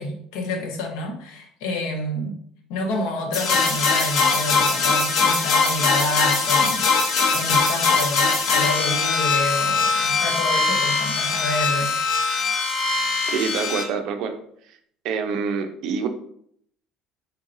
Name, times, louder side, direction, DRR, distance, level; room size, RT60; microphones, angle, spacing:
voice 1, 0.0-2.4 2.7-6.9 7.3-11.9, left 1 dB, 85° left, 3 dB, 1.0 m, -28 dB
sound 1, 3.3-13.8, left 4 dB, 45° left, 0.9 m, -21 dB
voice 2, 13.3-14.3 15.0-16.1, right 6 dB, 60° right, 7 dB, 0.6 m, -26 dB
4.6 x 4.4 x 2.6 m, 0.66 s
cardioid pair, 155°, 0 cm